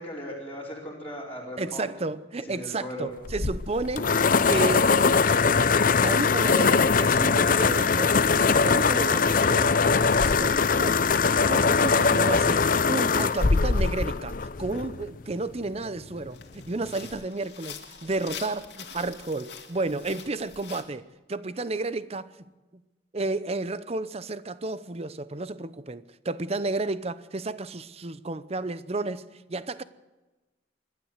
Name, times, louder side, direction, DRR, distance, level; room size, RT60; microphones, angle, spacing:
voice 1, 0.0-1.9 2.4-3.1, equal, 10° left, 4.7 m, -38 dB
voice 2, 1.6-5.0 5.8-8.2 8.6-11.0 11.5-14.3 14.6-22.3 23.1-29.8, right 2 dB, 35° right, 0.8 m, -32 dB
sound 1, 3.2-15.1, left 5 dB, 50° left, 0.6 m, -22 dB
sound 2, 14.6-14.9 15.5-15.6 16.2-20.8, left 8 dB, 65° left, 2.3 m, -44 dB
26.5 x 12.0 x 8.1 m
head